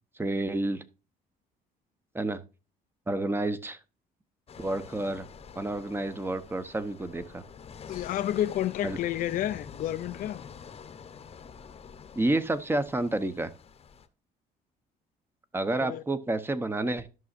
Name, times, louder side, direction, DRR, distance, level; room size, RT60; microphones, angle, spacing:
voice 1, 0.2-0.8 2.1-2.4 3.1-3.8 4.6-5.3 5.6-7.4 8.8-9.0 12.1-13.5 15.5-17.1, right 2 dB, 15° right, 0.9 m, -29 dB
sound 1, 4.5-14.1, left 6 dB, 35° left, 0.9 m, -47 dB
voice 2, 7.9-10.5 15.8-16.0, left 12 dB, 55° left, 0.5 m, -30 dB
12.5 x 6.3 x 2.5 m
cardioid pair, 110°, 17 cm